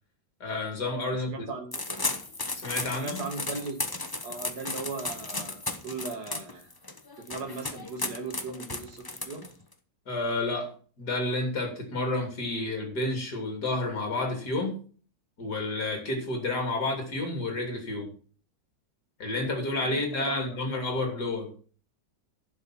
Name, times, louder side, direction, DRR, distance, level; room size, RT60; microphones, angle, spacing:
voice 1, 0.4-1.5 2.5-3.2 10.1-10.7 11.0-14.8 15.4-18.1 19.2-21.5, left 2 dB, 60° left, 2 dB, 3.6 m, -30 dB
voice 2, 1.1-1.7 2.9-3.8 4.2-6.7 7.2-9.5 19.8-20.7, right 4 dB, 60° right, 4 dB, 2.6 m, -38 dB
sound 1, 1.7-9.7, left 2 dB, 20° left, 0.6 m, -35 dB
11.0 x 6.3 x 6.0 m, 0.41 s
omnidirectional pair, 2.0 m